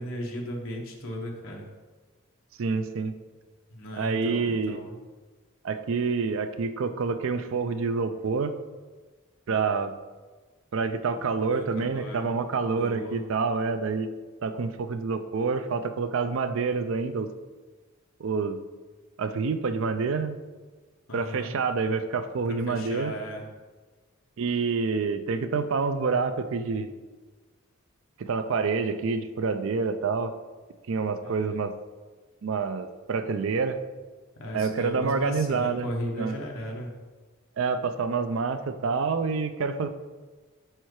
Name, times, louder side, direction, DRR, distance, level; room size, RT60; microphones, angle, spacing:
voice 1, 0.0-1.6 3.7-4.9 11.5-12.3 12.7-13.3 21.1-21.5 22.5-23.4 31.2-31.6 34.4-36.9, equal, 65° left, 0 dB, 1.0 m, -36 dB
voice 2, 2.6-3.1 3.9-4.8 5.6-8.5 9.5-9.9 10.7-14.1 14.4-17.3 18.2-18.6 19.2-20.4 21.1-23.1 24.4-26.9 28.2-30.3 30.9-31.7 32.4-33.8 34.5-35.9 36.2-36.3 37.6-39.9, right 4 dB, 65° right, 10 dB, 0.4 m, -27 dB
4.6 x 4.5 x 4.7 m, 1.3 s
head